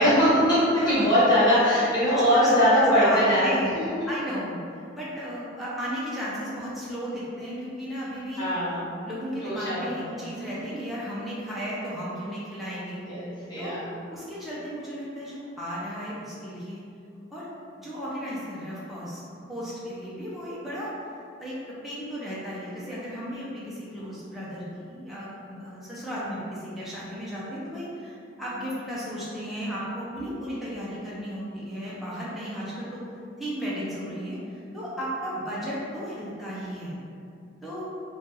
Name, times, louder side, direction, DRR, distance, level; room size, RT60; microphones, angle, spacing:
voice 1, 0.0-3.6 8.4-8.8 9.4-10.4 13.0-13.9, equal, 20° left, -13 dB, 1.4 m, -21 dB
voice 2, 0.8-1.2 2.1-2.5 3.0-3.8 4.1-8.4 9.0-13.0 13.6-13.7 14.1-16.8 17.3-17.5 17.8-19.2 19.5-33.0 33.4-36.9 37.6-37.9, equal, ahead, -9 dB, 0.6 m, -34 dB
2.7 x 2.5 x 3.8 m, 2.4 s
head